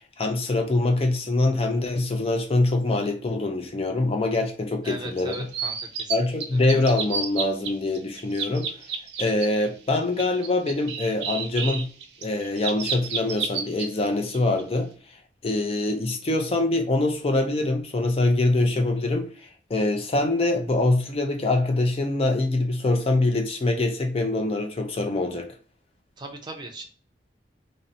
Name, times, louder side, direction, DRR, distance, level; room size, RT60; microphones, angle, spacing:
voice 1, 0.2-5.3 6.1-8.7 9.2-11.9 12.2-14.9 15.4-19.3 19.7-25.5, left 2 dB, 35° left, 0.4 m, -24 dB
voice 2, 4.8-6.6 26.2-26.9, right 2 dB, 25° right, 0.5 m, -39 dB
sound 1, 5.2-6.1 6.4-7.7 7.9-9.5 9.9-13.8 14.3-14.6, right 6 dB, 75° right, 0.5 m, -30 dB
2.7 x 2.0 x 2.5 m
head